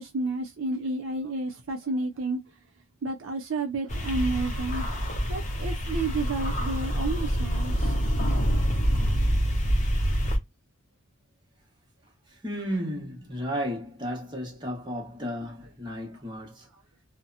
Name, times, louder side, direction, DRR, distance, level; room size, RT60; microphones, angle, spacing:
voice 1, 0.0-2.4 3.0-4.9 5.3-7.9, right 2 dB, 65° right, 0.4 m, -31 dB
sound 1, 3.9-10.4, equal, 35° left, 0.6 m, -26 dB
voice 2, 12.4-16.7, equal, 20° right, 0.9 m, -33 dB
2.7 x 2.1 x 2.4 m
head